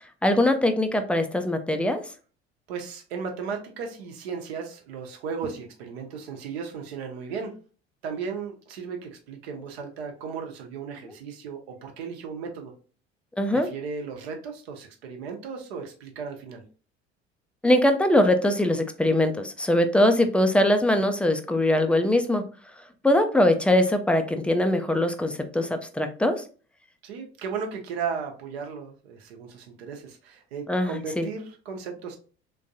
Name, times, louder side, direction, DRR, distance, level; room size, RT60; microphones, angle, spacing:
voice 1, 0.2-2.0 13.4-13.7 17.6-22.4 23.0-26.4 30.7-31.3, left 1 dB, 5° left, 7 dB, 0.4 m, -22 dB
voice 2, 2.7-7.5 8.0-12.7 13.5-16.6 27.0-32.2, right 5 dB, 65° right, 3 dB, 0.9 m, -35 dB
3.5 x 3.1 x 2.6 m, 0.39 s
figure-of-eight pair, 60°, 33 cm